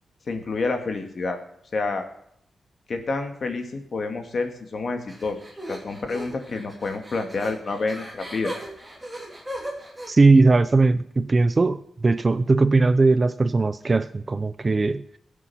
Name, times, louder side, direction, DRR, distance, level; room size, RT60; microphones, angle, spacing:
voice 1, 0.3-1.4 1.7-2.1 2.9-5.4 5.7-8.5, left 3 dB, 50° left, 5 dB, 2.4 m, -28 dB
sound 1, 5.1-10.1, equal, 5° right, 3.2 m, -38 dB
voice 2, 10.1-15.0, right 3 dB, 30° right, 14 dB, 0.6 m, -19 dB
20.5 x 8.5 x 5.7 m, 0.71 s
wide cardioid pair, 130°, 0 cm